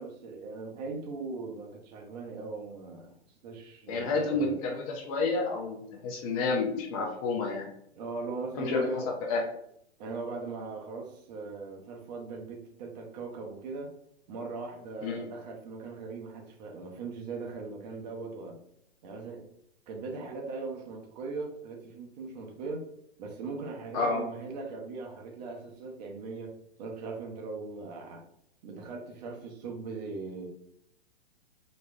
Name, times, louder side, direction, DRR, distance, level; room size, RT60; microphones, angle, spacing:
voice 1, 0.0-3.1 3.4-4.6 7.9-9.1 10.0-13.9 14.3-18.6 19.0-19.4 19.9-22.9 23.2-28.2 28.6-30.5, right 4 dB, 40° right, 1 dB, 0.7 m, -39 dB
voice 2, 3.9-7.7 8.6-9.4 15.0-15.3 23.9-24.2, left 3 dB, 30° left, 1 dB, 0.6 m, -30 dB
4.0 x 2.2 x 2.6 m, 0.73 s
figure-of-eight pair, 110°, 33 cm